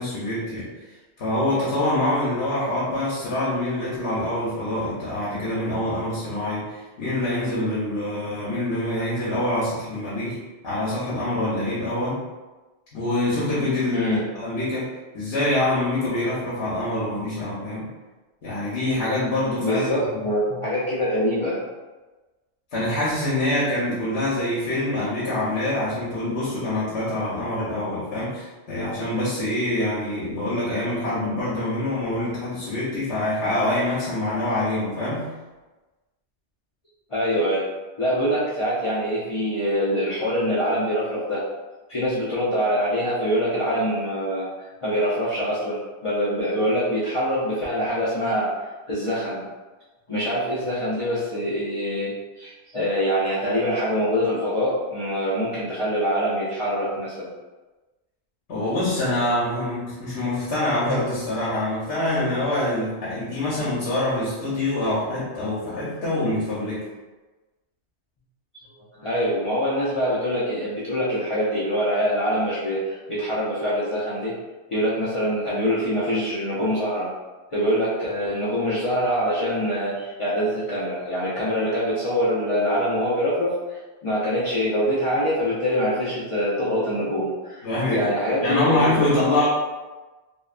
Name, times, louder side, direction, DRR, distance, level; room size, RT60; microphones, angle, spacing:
voice 1, 0.0-10.4 10.6-12.2 12.9-14.1 14.3-14.9 15.1-17.9 18.4-20.2 22.7-35.3 58.5-66.8 87.6-88.1 88.4-89.5, left 1 dB, 70° left, -7 dB, 0.9 m, -25 dB
voice 2, 13.9-14.2 19.6-21.6 37.1-37.7 38.0-41.4 41.9-44.5 44.8-48.5 48.9-49.5 50.1-57.3 69.0-74.4 74.7-77.1 77.5-89.1, equal, 55° left, -9 dB, 0.3 m, -24 dB
2.6 x 2.2 x 2.3 m, 1.2 s
omnidirectional pair, 1.2 m